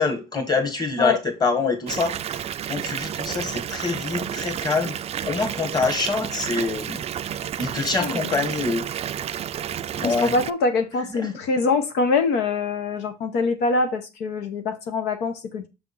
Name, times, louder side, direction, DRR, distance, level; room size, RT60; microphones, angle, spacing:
voice 1, 0.0-2.4 2.7-4.9 5.2-7.0 7.6-8.8 10.0-10.3 11.1-11.3, left 4 dB, 25° left, 1.7 m, -25 dB
Water tap faucet / Bathtub (filling or washing) / Fill (with liquid), 1.9-10.5, right 9 dB, 40° right, 0.3 m, -31 dB
voice 2, 8.0-8.4 10.0-15.7, left 3 dB, 90° left, 1.0 m, -24 dB
6.6 x 3.5 x 5.5 m
cardioid pair, 110°, 17 cm